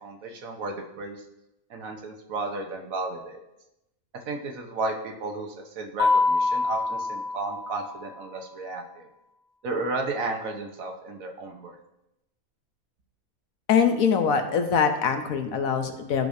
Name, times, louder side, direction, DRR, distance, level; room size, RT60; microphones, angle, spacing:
voice 1, 0.0-1.2 1.7-3.4 4.3-9.1 9.6-11.7, right 3 dB, 75° right, 3 dB, 1.4 m, -33 dB
Mallet percussion, 6.0-8.1, left 3 dB, 45° left, 1.3 m, -25 dB
voice 2, 13.7-16.3, left 6 dB, 75° left, 7 dB, 1.2 m, -23 dB
13.0 x 4.9 x 2.6 m, 0.89 s
omnidirectional pair, 1.5 m